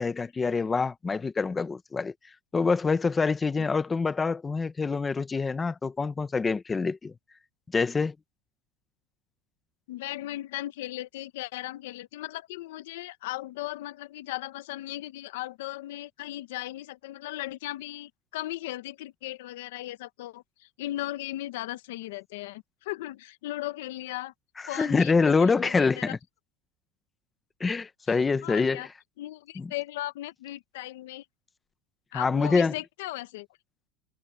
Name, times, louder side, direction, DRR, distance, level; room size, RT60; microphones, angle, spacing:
voice 1, 0.0-2.1 2.5-7.1 7.7-8.1 24.6-26.2 27.6-28.9 29.6-29.7 32.1-32.7, left 4 dB, 10° left, 0.7 m, -26 dB
voice 2, 9.9-24.3 24.7-26.2 28.1-28.9 29.2-31.2 32.1-33.5, left 16 dB, 85° left, 1.0 m, -37 dB
cardioid pair, 170°, 0 cm